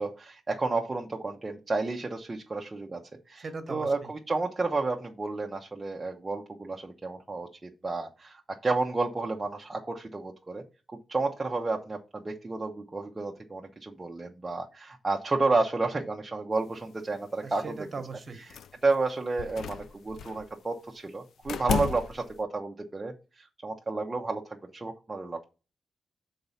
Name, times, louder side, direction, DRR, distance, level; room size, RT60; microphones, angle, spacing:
voice 1, 0.0-10.6 11.1-17.9 18.3-25.5, right 3 dB, 20° right, 1 dB, 0.6 m, -31 dB
voice 2, 3.4-3.9 17.4-18.4, right 4 dB, 35° right, 8 dB, 1.1 m, -38 dB
sound 1, 18.5-18.9 19.4-20.5 21.4-22.4, left 6 dB, 85° left, 0.4 m, -33 dB
6.7 x 4.0 x 5.5 m, 0.33 s
wide cardioid pair, 175°, 0 cm